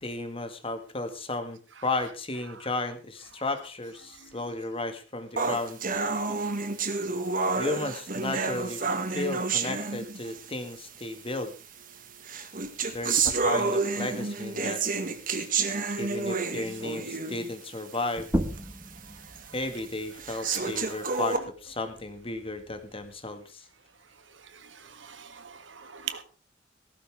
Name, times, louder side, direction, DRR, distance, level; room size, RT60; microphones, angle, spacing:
voice 1, 0.0-5.8 7.6-8.9 9.1-11.5 12.9-14.8 16.0-18.3 19.5-23.6, left 2 dB, 30° left, 8 dB, 1.9 m, -34 dB
sound 1, 5.4-10.5 11.4-11.5 12.2-17.5 17.9-18.0 18.6-18.7 19.3-19.4 20.2-21.4, right 4 dB, 50° right, 1.8 m, -29 dB
sound 2, 18.2-23.4, equal, 15° right, 1.4 m, -37 dB
voice 2, 25.0-26.2, right 8 dB, 75° right, 10 dB, 1.6 m, -40 dB
17.5 x 14.5 x 3.6 m, 0.33 s
head